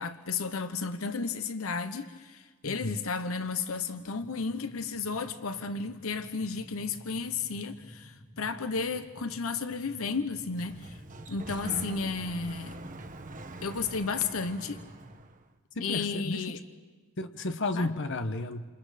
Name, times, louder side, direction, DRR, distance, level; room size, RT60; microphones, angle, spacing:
voice 1, 0.0-11.0 11.3-12.7 13.6-14.8 15.8-16.6 17.7-17.9, left 4 dB, 85° left, 1.0 m, -33 dB
voice 2, 2.6-3.0 15.7-16.4 17.2-18.7, left 2 dB, 60° left, 1.1 m, -33 dB
sound 1, 4.1-15.2, equal, 30° left, 4.3 m, -51 dB
Sliding door, 10.3-15.4, right 2 dB, 40° right, 1.2 m, -43 dB
28.5 x 28.0 x 5.1 m
head